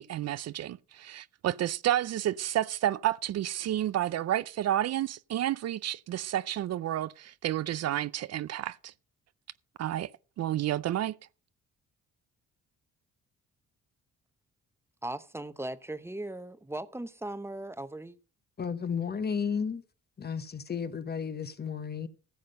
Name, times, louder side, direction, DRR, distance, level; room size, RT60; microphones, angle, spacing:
voice 1, 0.0-8.9 9.8-10.1 10.4-11.2, right 12 dB, 60° right, 0.5 m, -30 dB
voice 2, 15.0-18.2, right 1 dB, 10° right, 0.9 m, -38 dB
voice 3, 18.6-19.8 20.2-22.1, left 6 dB, 35° left, 1.0 m, -33 dB
15.0 x 7.5 x 5.3 m
cardioid pair, 90°, 30 cm